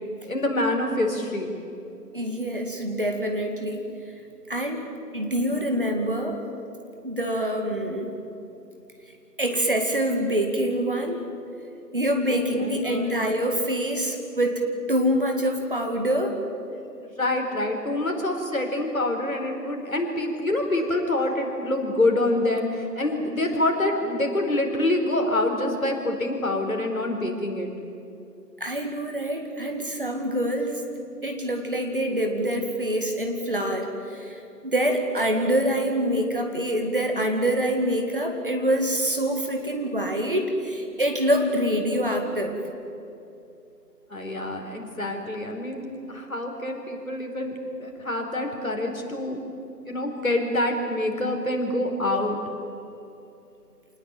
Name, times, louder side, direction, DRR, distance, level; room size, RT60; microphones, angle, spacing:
voice 1, 0.2-1.5 12.3-13.2 17.0-27.7 44.1-49.4 49.8-52.4, left 1 dB, 55° left, 2 dB, 4.6 m, -26 dB
voice 2, 2.1-3.8 4.5-4.9 5.1-6.4 7.0-8.1 9.4-11.2 11.9-14.6 14.9-16.4 28.6-30.8 31.2-42.6, equal, 30° right, 3 dB, 2.2 m, -25 dB
27.5 x 19.5 x 9.2 m, 2.7 s
figure-of-eight pair, 170°, 49 cm